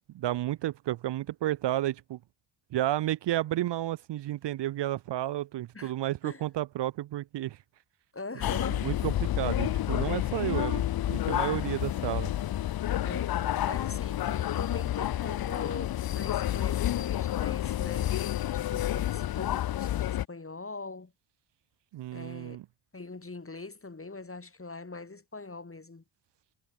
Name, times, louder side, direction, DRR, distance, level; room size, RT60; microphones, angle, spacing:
voice 1, 0.1-2.2 2.7-7.6 8.8-10.8 11.1-12.3 21.9-22.6, right 14 dB, 60° right, 0.6 m, -31 dB
voice 2, 8.1-8.9 13.0-18.1 18.5-21.1 22.1-22.6 22.9-26.0, left 3 dB, 25° left, 4.8 m, -42 dB
sound 1, 8.4-20.3, left 13 dB, 50° left, 0.6 m, -30 dB
supercardioid pair, 50°, 47 cm